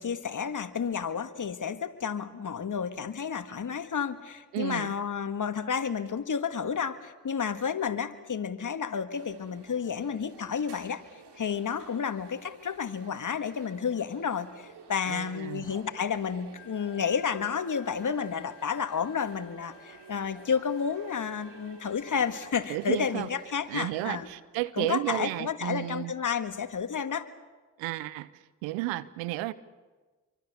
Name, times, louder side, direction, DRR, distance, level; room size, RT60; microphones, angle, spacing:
voice 1, 0.0-11.0 11.4-24.3 24.8-27.3, left 6 dB, 45° left, 10 dB, 1.8 m, -31 dB
voice 2, 4.5-4.9 15.1-15.7 22.7-23.3 23.7-26.1 27.8-28.3 28.6-29.5, right 17 dB, 80° right, 18 dB, 0.9 m, -32 dB
sound 1, 9.1-24.4, right 6 dB, 60° right, 3.3 m, -53 dB
Wind instrument woodwind instrument, 16.6-22.4, left 11 dB, 75° left, 1.8 m, -56 dB
26.5 x 24.0 x 6.8 m, 1.3 s
hypercardioid pair, 45°, 45 cm